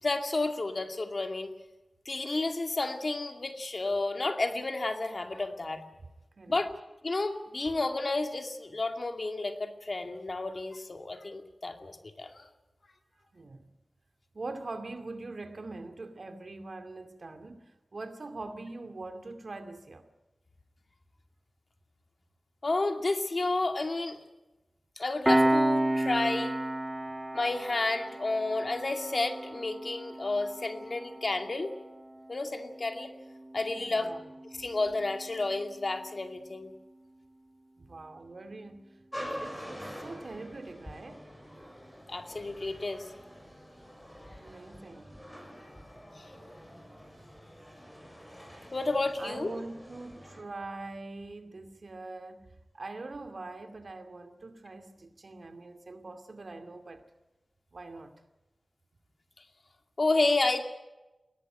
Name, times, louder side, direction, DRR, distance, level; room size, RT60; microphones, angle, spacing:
voice 1, 0.0-1.5 2.1-5.8 6.5-6.7 7.0-12.5 22.6-24.2 25.0-26.5 27.3-31.7 32.3-33.1 33.5-34.1 34.6-36.7 42.1-43.0 46.2-46.3 48.7-49.5 60.0-60.6, left 2 dB, 50° left, 2.3 m, -31 dB
voice 2, 13.3-13.7 14.3-20.1 33.8-34.3 37.8-41.3 44.4-45.2 47.1-47.4 49.2-57.1 57.7-58.1, right 3 dB, 60° right, 2.5 m, -43 dB
Piano, 25.2-36.3, right 1 dB, 10° right, 2.7 m, -33 dB
sound 1, 39.1-50.4, equal, 5° left, 7.2 m, -46 dB
21.0 x 18.0 x 8.8 m
wide cardioid pair, 60°, 0 cm